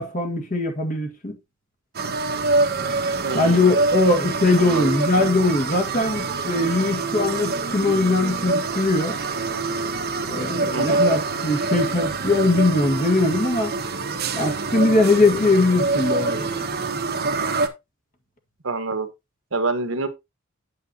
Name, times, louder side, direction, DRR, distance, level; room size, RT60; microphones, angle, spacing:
voice 1, 0.0-1.4 3.3-9.2 10.3-13.7 14.3-16.5, left 2 dB, 40° left, 1.7 m, -21 dB
sound 1, 1.9-17.7, right 3 dB, 50° right, 1.2 m, -25 dB
voice 2, 3.2-3.8 4.6-4.9 10.7-11.2 18.6-19.1 19.5-20.1, right 3 dB, 65° right, 1.3 m, -27 dB
9.1 x 7.1 x 2.8 m
head